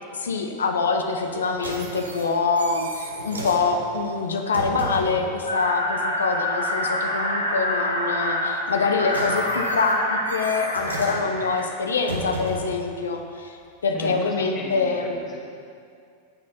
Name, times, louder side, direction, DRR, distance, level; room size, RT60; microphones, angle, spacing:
voice 1, 0.1-15.2, left 4 dB, 70° left, 4 dB, 0.8 m, -25 dB
sound 1, 1.2-5.3 8.6-12.8 13.6-13.7, right 2 dB, 75° right, 1.4 m, -35 dB
sound 2, 5.5-11.7, left 1 dB, 85° left, 1.4 m, -27 dB
voice 2, 13.9-15.4, left 2 dB, 30° left, -4 dB, 1.9 m, -35 dB
18.0 x 6.3 x 4.2 m, 2.3 s
figure-of-eight pair, 90°, 0 cm